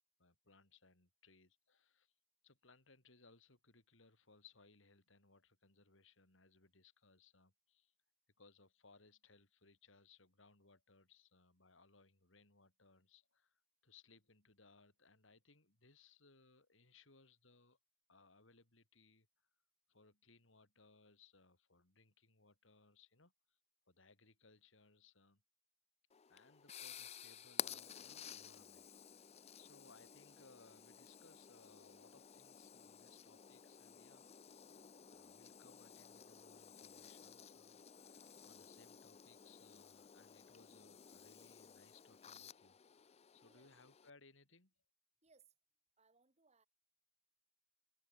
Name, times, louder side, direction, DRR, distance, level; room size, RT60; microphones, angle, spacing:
voice 1, 0.2-2.1 2.4-7.9 8.4-17.8 18.1-19.3 19.9-23.6 23.9-25.4 26.3-29.2 29.6-34.2 35.1-44.7, left 4 dB, 70° left, 4.2 m, -67 dB
sound 1, 26.1-44.1, left 9 dB, 30° left, 0.5 m, -53 dB
voice 2, 43.4-43.7 45.2-45.5 46.0-46.7, right 4 dB, 35° right, 4.3 m, -71 dB
head